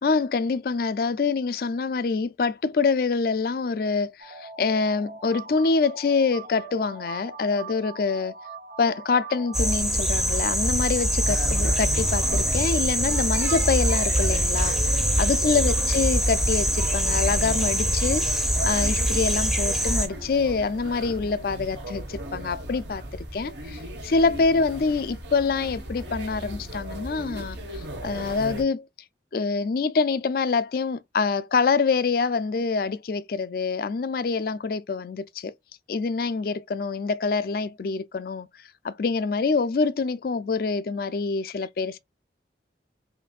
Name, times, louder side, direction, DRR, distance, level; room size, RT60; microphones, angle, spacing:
voice 1, 0.0-8.4 8.8-14.8 15.2-28.9 29.3-35.5 35.9-38.5 38.8-42.0, left 4 dB, 50° left, 0.4 m, -25 dB
sound 1, 4.2-9.8, right 4 dB, 50° right, 1.5 m, -42 dB
sound 2, 9.5-20.1, equal, ahead, 0.6 m, -23 dB
sound 3, 11.2-28.6, right 1 dB, 75° right, 1.3 m, -36 dB
5.7 x 2.6 x 2.3 m
head